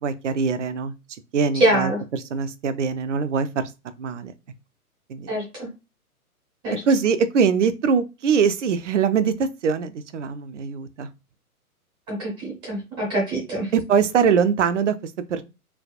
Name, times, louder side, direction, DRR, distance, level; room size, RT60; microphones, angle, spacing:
voice 1, 0.0-0.9 1.3-3.7 4.0-4.3 5.1-5.3 6.9-11.1 13.7-15.4, right 6 dB, 55° right, 0.5 m, -22 dB
voice 2, 1.6-2.0 5.3-5.7 6.6-6.8 12.1-13.7, right 1 dB, 10° right, 0.6 m, -24 dB
3.3 x 2.2 x 2.5 m
figure-of-eight pair, 115°, 45 cm